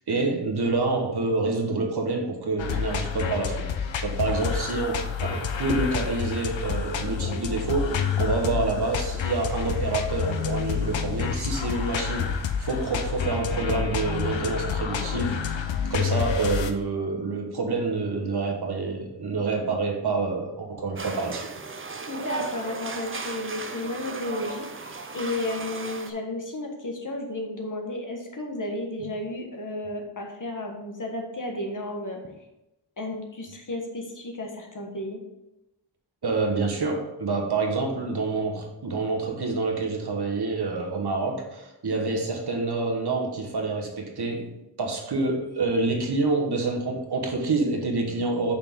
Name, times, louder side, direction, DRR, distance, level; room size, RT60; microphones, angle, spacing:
voice 1, 0.0-15.6 15.9-21.5 36.2-44.5 44.8-48.6, right 3 dB, 60° right, 2 dB, 1.2 m, -27 dB
sound 1, 2.6-16.7, left 7 dB, 85° left, 0.7 m, -29 dB
sound 2, 21.0-26.1, right 4 dB, 30° right, 0.6 m, -35 dB
voice 2, 22.1-32.2 33.0-35.2 41.9-42.2, left 2 dB, 45° left, 1 dB, 1.3 m, -33 dB
6.6 x 5.4 x 3.6 m, 0.92 s
wide cardioid pair, 110°, 44 cm